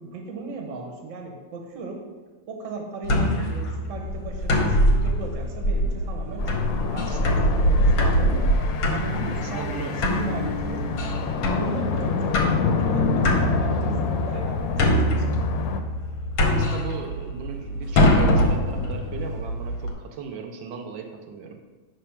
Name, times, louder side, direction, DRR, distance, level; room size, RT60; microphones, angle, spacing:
voice 1, 0.0-2.0 2.5-7.4 7.7-9.7 10.1-10.9 11.5-15.4, right 4 dB, 50° right, 1 dB, 1.0 m, -36 dB
sound 1, 3.0-19.9, equal, 60° left, 1.1 m, -24 dB
sound 2, 6.4-15.8, left 5 dB, 80° left, 1.3 m, -28 dB
voice 2, 9.4-10.0 16.5-21.6, right 6 dB, 80° right, 4 dB, 1.3 m, -37 dB
5.5 x 3.3 x 5.6 m, 1.3 s
omnidirectional pair, 2.1 m